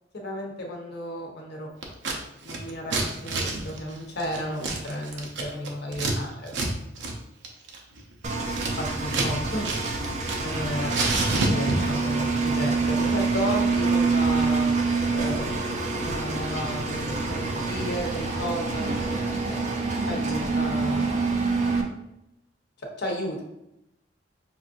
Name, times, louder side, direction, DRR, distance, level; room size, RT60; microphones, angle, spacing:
voice 1, 0.2-1.7 2.4-6.8 8.8-9.7 10.4-14.7 15.1-15.7 16.0-19.6 20.1-21.6 23.0-23.4, equal, 65° left, 0 dB, 0.9 m, -33 dB
Scissors, 1.8-2.2 2.4-6.1 6.5-6.7 7.0-7.1 7.4-9.3 9.6-10.6 10.8-12.0, right 2 dB, 75° right, 0.7 m, -28 dB
Engine, 8.2-21.8, right 3 dB, 40° right, 0.5 m, -26 dB
5.7 x 2.6 x 2.5 m, 0.86 s
head